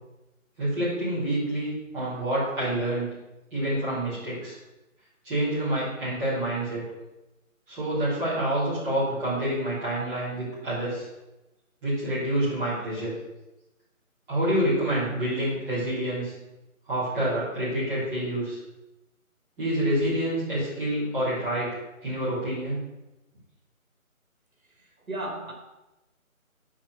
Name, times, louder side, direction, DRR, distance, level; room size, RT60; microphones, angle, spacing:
voice 1, 0.6-3.1 3.5-4.5 5.2-6.8 7.7-11.1 11.8-13.1 14.3-16.3 16.9-18.6 19.6-22.8, right 1 dB, 5° right, 3.7 m, -27 dB
voice 2, 24.8-25.5, right 1 dB, 80° right, 2.8 m, -35 dB
7.6 x 5.6 x 7.2 m
figure-of-eight pair, 170°, 42 cm